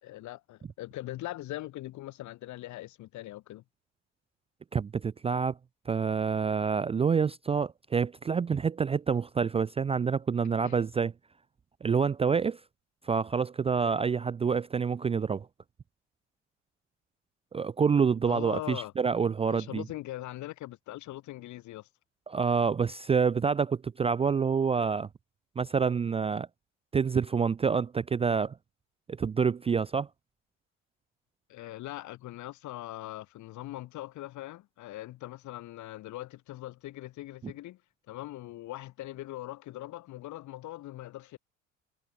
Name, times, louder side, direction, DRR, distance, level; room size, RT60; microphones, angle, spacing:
voice 1, 0.0-3.6 10.6-10.8 18.3-18.9 19.5-21.9 31.5-37.8 38.1-41.4, left 16 dB, 55° left, 3.1 m, -41 dB
voice 2, 4.7-5.6 5.9-11.1 11.8-12.6 13.0-15.5 17.5-19.8 22.3-25.1 25.6-26.5 26.9-28.6 29.2-30.1, right 6 dB, 15° right, 0.5 m, -27 dB
figure-of-eight pair, 55°, 36 cm